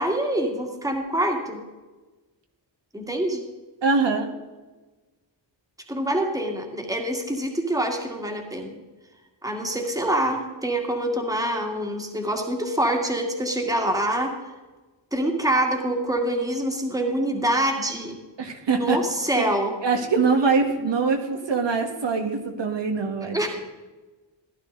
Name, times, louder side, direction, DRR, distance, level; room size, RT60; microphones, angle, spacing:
voice 1, 0.0-1.6 2.9-3.5 5.9-8.8 9.4-14.3 15.1-18.2 18.7-19.7 23.3-23.6, right 1 dB, 5° right, 2 dB, 2.1 m, -25 dB
voice 2, 3.8-4.3 18.4-19.0 19.3-19.4 19.8-23.6, right 4 dB, 65° right, 3 dB, 1.8 m, -23 dB
16.0 x 11.5 x 3.9 m, 1.2 s
wide cardioid pair, 115°, 46 cm